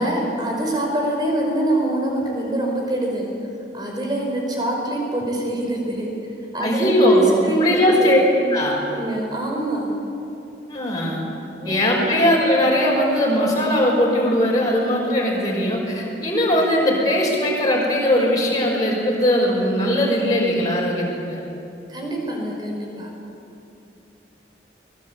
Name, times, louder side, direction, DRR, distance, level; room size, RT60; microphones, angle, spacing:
voice 1, 0.0-3.3 3.7-8.5 8.9-9.9 11.6-11.7 12.0-12.1 21.9-23.1, right 1 dB, 25° right, 0 dB, 5.1 m, -25 dB
voice 2, 6.6-8.2 8.5-8.8 10.7-11.2 11.6-21.4, equal, 20° left, -4 dB, 5.9 m, -19 dB
24.0 x 20.0 x 8.4 m, 2.8 s
head